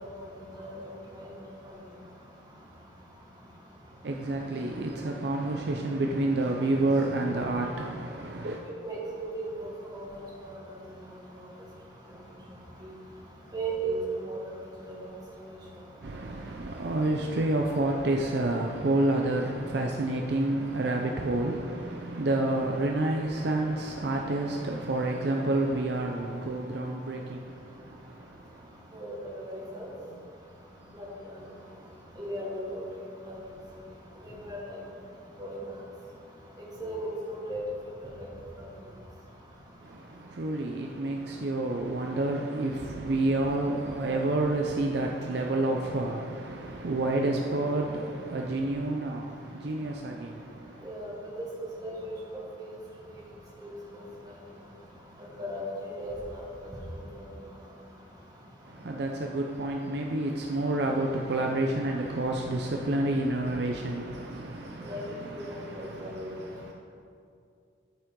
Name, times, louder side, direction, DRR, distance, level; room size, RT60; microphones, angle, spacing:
voice 1, 0.6-0.9 1.2-1.3 8.8-10.6 13.5-14.0 14.3-14.4 14.9-15.0 28.9-29.9 30.9-31.1 32.2-32.8 33.3-33.4 34.2-34.8 35.4-35.6 36.8-37.6 38.2-38.3 50.8-51.5 51.8-52.4 53.6-54.0 55.4-55.6 55.9-56.4 64.8-65.0 65.3-66.7, right 2 dB, 20° right, 1.5 m, -36 dB
voice 2, 4.0-8.6 16.0-28.7 30.1-30.2 30.8-30.9 39.8-50.9 58.6-66.7, right 2 dB, 55° right, 0.5 m, -29 dB
12.5 x 5.5 x 3.7 m
head